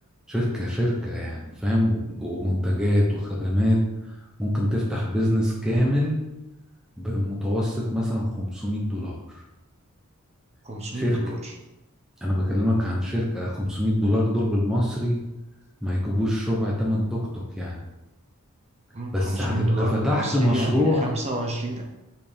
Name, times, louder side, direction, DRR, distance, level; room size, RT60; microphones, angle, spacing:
voice 1, 0.3-3.8 4.4-6.2 7.0-9.4 10.9-11.2 12.2-15.2 15.8-17.8 19.1-21.1, left 1 dB, 5° right, -4 dB, 0.9 m, -24 dB
voice 2, 10.6-11.5 18.9-21.8, right 1 dB, 30° right, 0 dB, 1.1 m, -29 dB
8.3 x 4.4 x 3.6 m, 0.98 s
head